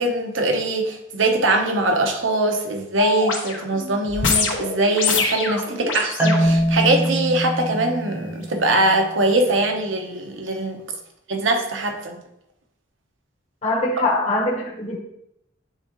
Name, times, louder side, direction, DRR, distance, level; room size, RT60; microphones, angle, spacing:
voice 1, 0.0-10.8 11.3-12.2, right 2 dB, 85° right, 4 dB, 1.1 m, -22 dB
sound 1, 3.0-7.1 7.7-7.9, left 4 dB, 85° left, 1.3 m, -25 dB
Marimba xylophone, 6.2-9.2, equal, 10° right, 0.7 m, -23 dB
voice 2, 13.6-15.0, left 2 dB, 35° left, -4 dB, 1.1 m, -22 dB
9.3 x 3.7 x 3.1 m, 0.81 s
head